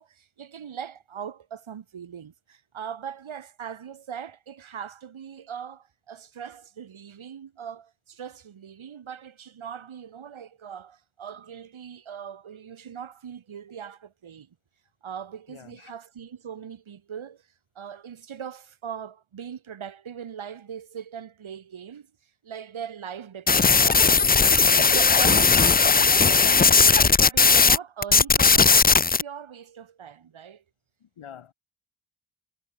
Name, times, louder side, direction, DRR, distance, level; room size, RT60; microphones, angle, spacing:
voice 1, 0.0-14.5 15.0-17.5 17.8-22.1 22.4-24.2 24.7-28.9 29.2-30.6, right 8 dB, 70° right, 6.0 m, -40 dB
voice 2, 15.5-15.9 31.0-31.5, left 9 dB, 80° left, 4.8 m, -46 dB
sound 1, 23.5-27.8 28.0-29.2, left 5 dB, 20° left, 0.5 m, -17 dB
wide cardioid pair, 125°, 49 cm